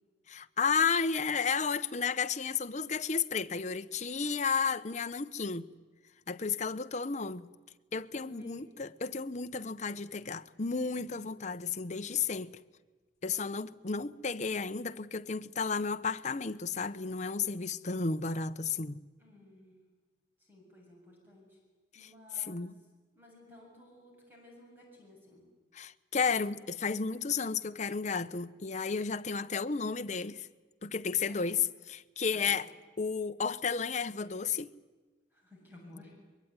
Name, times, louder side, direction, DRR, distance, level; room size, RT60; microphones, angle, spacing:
voice 1, 0.3-5.7 6.3-7.5 7.9-12.5 13.2-19.0 22.4-22.7 25.7-30.5 30.8-31.6 31.9-32.7 33.0-34.7, left 5 dB, 45° left, 0.9 m, -33 dB
voice 2, 8.1-8.7 11.1-11.3 19.2-19.8 20.4-21.6 21.9-22.7 23.1-25.4 31.3-31.6 32.3-32.6 35.3-36.1, left 1 dB, 10° right, 7.4 m, -55 dB
23.5 x 22.0 x 9.6 m
head